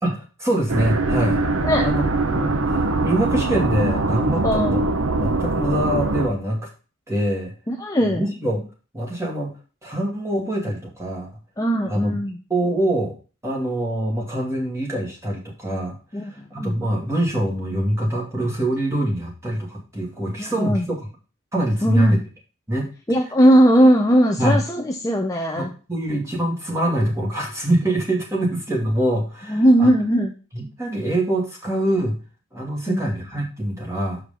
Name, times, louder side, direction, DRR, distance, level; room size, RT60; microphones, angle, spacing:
voice 1, 0.0-1.4 1.8-4.8 5.2-6.7 7.1-7.5 8.1-8.6 8.9-9.5 9.8-11.3 11.9-12.2 12.5-13.1 13.4-16.0 16.2-21.1 21.5-22.2 22.7-22.9 24.4-24.6 25.6-29.9 30.5-32.2 32.5-34.2, right 1 dB, 15° right, -1 dB, 2.3 m, -24 dB
sound 1, 0.7-6.3, right 2 dB, 80° right, 1.0 m, -22 dB
voice 2, 4.4-4.8 7.7-8.3 11.6-12.4 16.1-16.7 20.4-20.8 21.8-22.2 23.1-25.7 29.5-30.3 32.9-33.1, equal, 15° left, 2 dB, 0.6 m, -19 dB
7.2 x 4.6 x 5.2 m, 0.34 s
head